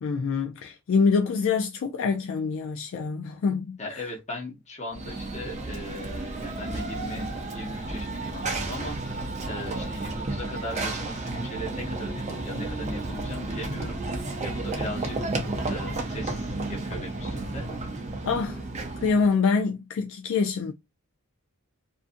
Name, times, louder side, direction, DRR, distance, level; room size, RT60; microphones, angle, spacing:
voice 1, 0.0-4.0 18.2-18.6 19.0-20.7, left 5 dB, 60° left, 0.3 m, -25 dB
voice 2, 3.8-9.2 9.5-14.0 14.4-15.4 15.7-17.7, left 1 dB, 30° left, 0.8 m, -38 dB
Run / Train, 4.9-19.4, right 2 dB, 30° right, 0.5 m, -32 dB
2.6 x 2.4 x 2.5 m
head